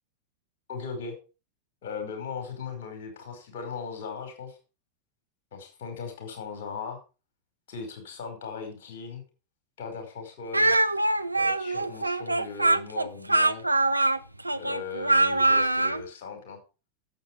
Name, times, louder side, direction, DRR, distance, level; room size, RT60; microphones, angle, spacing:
voice 1, 0.7-1.1 1.8-4.6 5.5-7.0 7.7-9.2 9.8-10.8 11.3-13.6 14.5-16.6, left 5 dB, 55° left, 4 dB, 5.2 m, -38 dB
Speech, 10.5-16.0, right 2 dB, 85° right, 0.6 m, -23 dB
11.5 x 8.0 x 4.9 m, 0.32 s
figure-of-eight pair, 90°, 0 cm